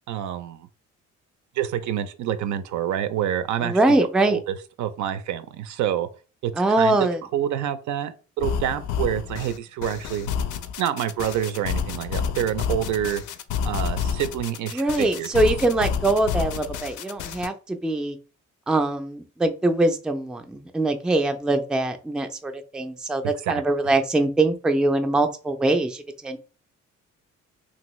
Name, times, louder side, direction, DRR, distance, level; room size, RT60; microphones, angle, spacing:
voice 1, 0.1-0.7 1.6-3.8 4.3-4.4 4.8-6.1 6.4-6.5 6.8-7.0 7.3-10.3 10.8-13.2 13.6-15.3 15.8-15.9 23.5-23.6, right 10 dB, 75° right, 0.5 m, -27 dB
voice 2, 3.6-4.4 6.6-7.2 14.7-18.2 18.7-26.4, right 2 dB, 5° right, 0.3 m, -23 dB
sound 1, 8.4-17.5, left 7 dB, 80° left, 0.5 m, -29 dB
2.8 x 2.6 x 3.0 m
cardioid pair, 90°, 30 cm